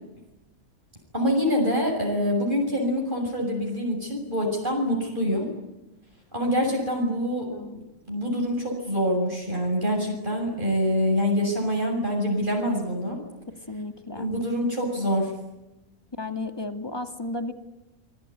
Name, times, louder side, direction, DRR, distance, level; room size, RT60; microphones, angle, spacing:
voice 1, 1.1-5.5 6.3-7.5 8.1-13.2 14.1-15.3, equal, 30° right, -1 dB, 7.1 m, -25 dB
voice 2, 7.5-7.8 13.7-14.3 16.2-17.5, left 2 dB, 15° left, 7 dB, 2.1 m, -33 dB
27.0 x 22.5 x 9.6 m, 0.99 s
omnidirectional pair, 1.6 m